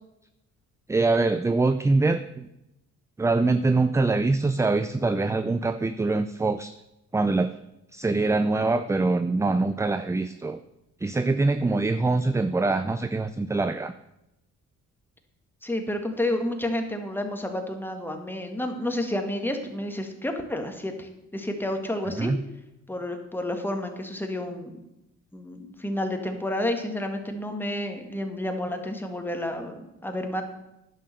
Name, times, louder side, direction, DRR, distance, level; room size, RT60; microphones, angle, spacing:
voice 1, 0.9-2.5 3.2-6.8 7.1-7.5 7.9-10.6 11.0-13.9 22.1-22.4, right 3 dB, 10° right, 11 dB, 0.4 m, -24 dB
voice 2, 15.6-22.3 22.9-24.7 25.3-30.4, left 1 dB, 5° left, 4 dB, 1.8 m, -30 dB
10.5 x 6.6 x 6.7 m, 0.89 s
cardioid pair, 90°, 30 cm